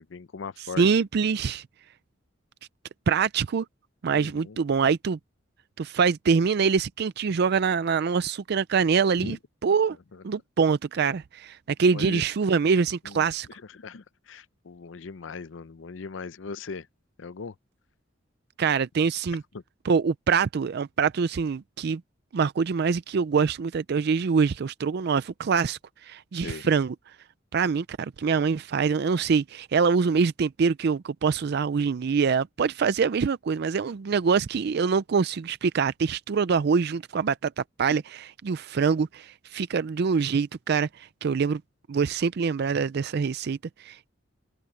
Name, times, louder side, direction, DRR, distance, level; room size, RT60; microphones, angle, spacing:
voice 1, 0.0-1.0 4.1-4.6 9.2-9.4 10.1-10.2 11.9-12.2 13.0-16.9 17.2-17.5 19.5-19.6 26.4-26.7, left 4 dB, 85° left, 0.6 m, -39 dB
voice 2, 0.8-1.6 3.1-3.7 4.0-5.2 5.8-9.4 9.6-10.0 10.2-13.5 18.6-19.4 19.9-22.0 22.3-26.9 27.5-41.6 41.9-44.1, right 5 dB, 60° right, 0.4 m, -24 dB
open air
head